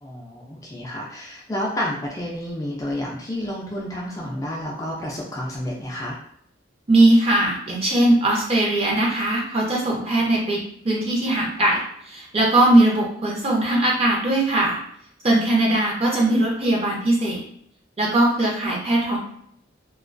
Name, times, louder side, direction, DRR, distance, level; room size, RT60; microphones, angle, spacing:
voice 1, 0.0-6.2, left 1 dB, 20° left, -3 dB, 0.3 m, -30 dB
voice 2, 6.9-14.8 15.2-17.4 18.0-19.2, right 1 dB, 30° right, -2 dB, 0.5 m, -20 dB
2.3 x 2.2 x 2.5 m, 0.67 s
head